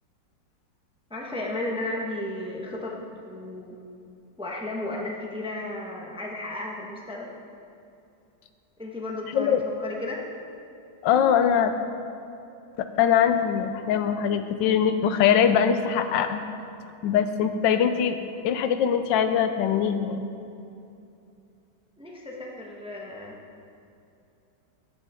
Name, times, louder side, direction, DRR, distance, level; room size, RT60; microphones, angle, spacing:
voice 1, 1.1-3.8 4.4-7.3 8.8-10.2 22.0-23.4, left 2 dB, 5° right, -2 dB, 0.8 m, -34 dB
voice 2, 11.0-11.7 12.8-16.4 17.0-18.2 18.4-20.3, left 8 dB, 90° left, 9 dB, 1.3 m, -22 dB
14.0 x 8.4 x 3.6 m, 2.6 s
omnidirectional pair, 1.9 m